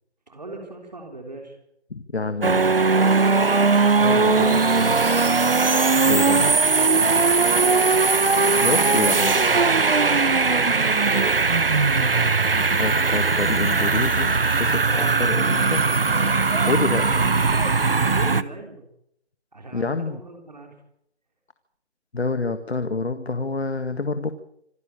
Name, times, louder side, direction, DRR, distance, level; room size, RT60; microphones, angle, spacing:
voice 1, 0.3-1.6 2.1-3.3 4.0-5.2 8.9-11.7 14.9-15.1 16.0-16.7 18.1-18.9 19.5-20.8, right 2 dB, 40° right, 3 dB, 3.5 m, -40 dB
voice 2, 1.9-3.0 4.0-4.6 6.1-6.5 8.6-9.4 12.8-14.3 14.6-15.8 16.7-17.0 19.7-20.2 22.1-24.3, left 3 dB, 65° left, 10 dB, 1.8 m, -27 dB
sound 1, 2.4-18.4, right 4 dB, 55° right, 1.1 m, -19 dB
26.5 x 11.5 x 8.9 m, 0.75 s
figure-of-eight pair, 180°, 34 cm